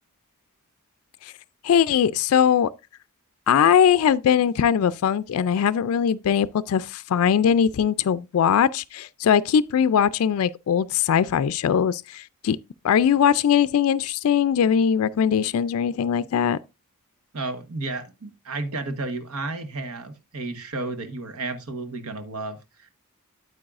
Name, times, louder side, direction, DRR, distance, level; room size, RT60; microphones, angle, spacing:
voice 1, 1.6-2.7 3.5-12.6 12.8-16.6, left 8 dB, 70° left, 0.3 m, -20 dB
voice 2, 17.3-22.9, right 3 dB, 90° right, 1.2 m, -32 dB
8.7 x 8.4 x 2.4 m
head